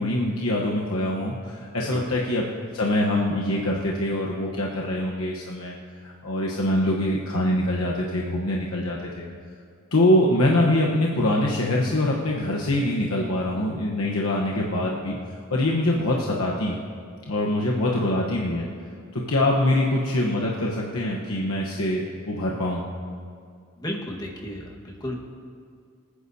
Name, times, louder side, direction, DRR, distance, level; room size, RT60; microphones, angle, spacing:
voice 1, 0.0-2.4 2.7-5.8 6.0-9.2 9.9-15.2 15.5-16.8 17.3-18.7 19.1-22.8, left 1 dB, 90° left, -3 dB, 1.1 m, -24 dB
voice 2, 23.8-25.1, equal, 20° left, -1 dB, 1.5 m, -33 dB
25.0 x 9.9 x 2.8 m, 2.2 s
head